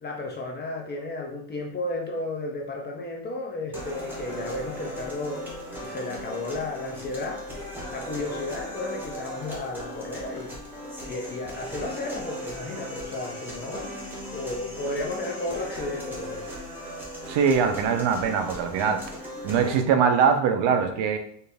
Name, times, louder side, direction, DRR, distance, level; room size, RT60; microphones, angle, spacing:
voice 1, 0.0-7.4 7.9-10.5 11.0-13.9 14.3-16.5, left 2 dB, 25° left, 0 dB, 0.4 m, -33 dB
sound 1, 3.7-19.7, equal, 5° right, 0.8 m, -38 dB
voice 2, 17.3-19.0 19.4-21.2, right 6 dB, 60° right, 7 dB, 0.7 m, -22 dB
4.3 x 2.5 x 3.3 m, 0.63 s
cardioid pair, 170°, 49 cm